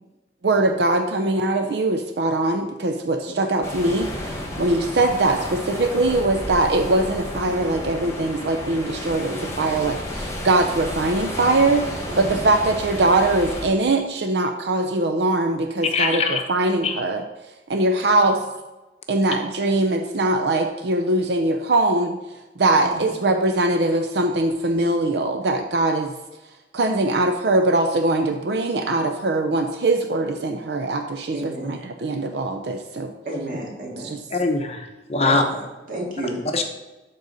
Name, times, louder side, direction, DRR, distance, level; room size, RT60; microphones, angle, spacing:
voice 1, 0.4-17.2 17.7-18.4 19.1-22.2 22.6-26.1 26.7-33.1 34.0-34.2, right 2 dB, 70° right, 6 dB, 0.5 m, -22 dB
sound 1, 3.6-13.7, left 1 dB, 15° left, 1.4 m, -32 dB
voice 2, 12.1-12.4 22.8-23.2 31.3-31.8 33.3-34.1 35.2-36.4, right 1 dB, 50° right, -2 dB, 2.1 m, -31 dB
voice 3, 15.9-16.4 16.8-16.9 34.3-35.4 36.5-36.6, left 3 dB, 35° left, 5 dB, 0.7 m, -22 dB
12.0 x 4.0 x 4.0 m, 1.1 s
head